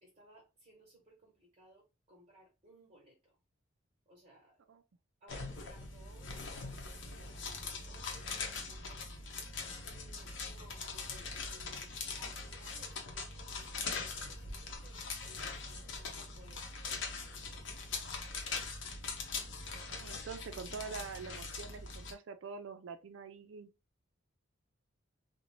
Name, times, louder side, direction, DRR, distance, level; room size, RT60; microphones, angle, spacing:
voice 1, 0.0-3.1 4.1-4.5 5.2-9.0 9.8-11.9 12.2-16.6 17.3-17.7, right 1 dB, 35° right, 0.9 m, -61 dB
sound 1, 5.3-22.1, left 4 dB, 70° left, 0.7 m, -42 dB
voice 2, 19.7-23.7, right 5 dB, 75° right, 0.4 m, -45 dB
2.5 x 2.1 x 3.0 m
head